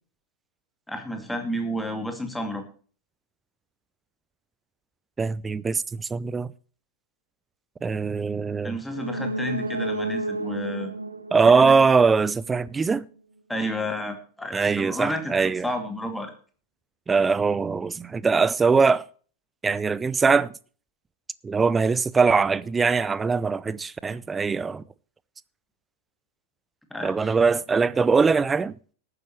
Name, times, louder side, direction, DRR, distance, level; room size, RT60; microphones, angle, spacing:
voice 1, 0.9-2.6 8.6-10.9 11.6-11.8 13.5-16.3 26.9-27.3, equal, 5° left, 2.5 m, -31 dB
voice 2, 5.2-6.5 7.8-8.8 11.3-13.1 14.5-15.7 17.1-19.1 19.6-20.5 21.4-24.8 27.0-28.8, right 5 dB, 15° right, 0.5 m, -22 dB
sound 1, 8.9-12.6 12.9-13.0, right 2 dB, 80° right, 1.0 m, -31 dB
18.5 x 9.8 x 3.1 m
figure-of-eight pair, 90°, 0 cm